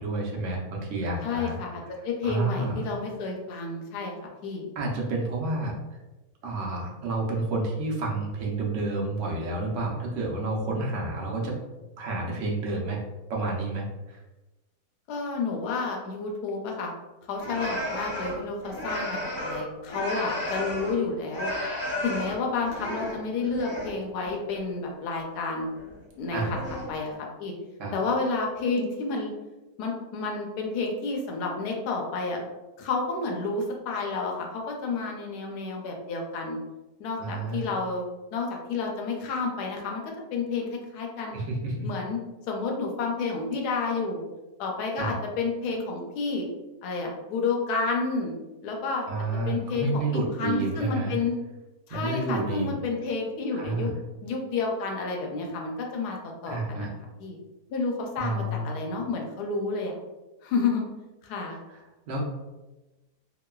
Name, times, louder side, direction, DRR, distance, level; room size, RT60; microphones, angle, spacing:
voice 1, 0.0-1.6 2.2-2.8 4.8-5.7 6.4-11.6 12.0-13.0 13.3-14.2 26.3-26.5 27.8-27.9 37.2-37.7 41.3-41.9 45.0-45.1 49.1-51.1 51.9-52.7 53.5-53.9 56.5-56.9 58.2-58.7 61.7-61.8 62.1-62.2, right 2 dB, 65° right, -2 dB, 0.8 m, -30 dB
voice 2, 1.2-1.7 2.0-4.2 4.4-4.7 15.1-16.9 17.3-21.5 22.0-25.7 26.2-26.4 26.9-27.1 27.4-27.5 27.9-29.3 29.8-32.4 32.8-36.6 37.0-38.0 38.3-41.4 41.8-42.2 42.5-44.2 44.6-46.4 46.8-48.3 48.6-49.1 49.5-50.0 50.4-51.4 51.9-53.9 54.2-56.9 57.2-57.4 57.7-59.9 60.4-60.9 61.2-61.6, left 4 dB, 75° left, 0 dB, 1.1 m, -30 dB
sound 1, 17.4-21.0 21.3-23.9 24.2-24.6 25.6-26.0 26.3-27.1, left 1 dB, 40° left, 0.8 m, -33 dB
3.0 x 2.2 x 2.2 m, 1.1 s
omnidirectional pair, 1.7 m